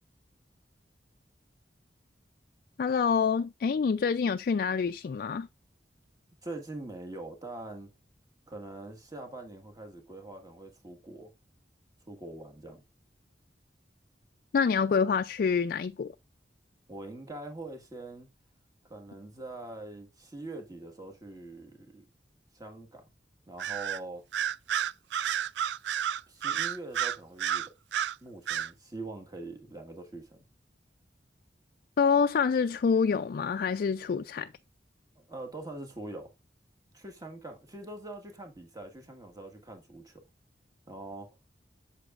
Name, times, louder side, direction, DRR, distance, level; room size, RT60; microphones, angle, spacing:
voice 1, 2.8-5.5 14.5-16.1 32.0-34.5, left 6 dB, 55° left, 0.3 m, -26 dB
voice 2, 6.4-7.9 8.5-11.3 12.1-12.8 16.9-18.3 18.8-22.0 22.5-23.1 23.5-24.2 26.3-27.7 28.2-30.4 35.3-36.3 36.9-40.2 40.9-41.3, right 2 dB, 20° right, 1.6 m, -43 dB
Bird vocalization bird call bird song, 23.6-24.0 24.3-28.2 28.5-28.7, right 9 dB, 75° right, 0.4 m, -30 dB
8.1 x 7.0 x 2.4 m
head